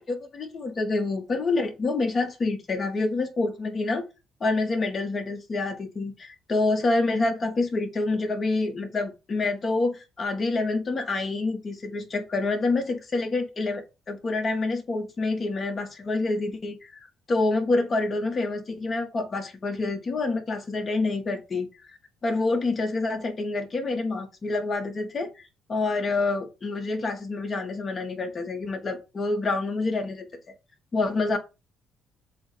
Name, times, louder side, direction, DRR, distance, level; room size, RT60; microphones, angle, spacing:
voice 1, 0.0-4.0 4.4-21.9 22.2-25.3 25.7-30.3 30.9-31.4, left 3 dB, 35° left, 1.9 m, -27 dB
7.7 x 2.7 x 5.2 m
cardioid pair, 115°, 0 cm